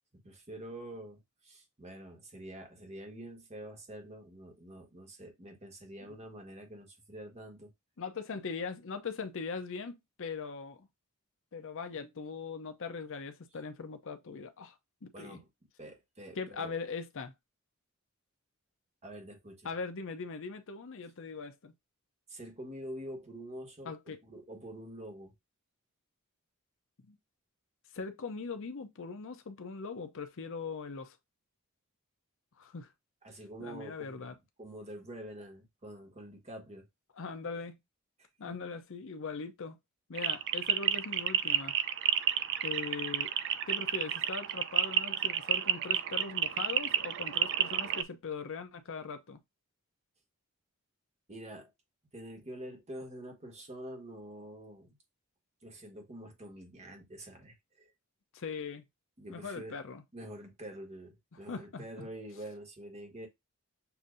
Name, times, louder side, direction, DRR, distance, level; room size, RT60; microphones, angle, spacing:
voice 1, 0.2-7.7 15.1-15.5 15.8-16.7 19.0-19.7 22.3-25.3 33.2-36.9 38.2-38.5 51.3-51.7 52.1-55.0 55.6-57.9 59.2-59.8 60.1-63.3, right 1 dB, 30° right, 1.4 m, -46 dB
voice 2, 8.0-10.9 11.5-14.8 15.0-15.4 16.3-17.3 19.6-21.7 23.8-24.2 27.0-27.2 27.9-31.2 32.6-32.9 33.6-34.3 37.1-37.7 38.4-39.8 40.1-41.7 42.6-43.3 43.7-49.4 58.3-58.8 59.3-60.0 61.5-62.1, left 4 dB, 60° left, 0.7 m, -40 dB
sound 1, 40.1-48.0, right 10 dB, 55° right, 0.4 m, -30 dB
6.9 x 2.7 x 2.5 m
head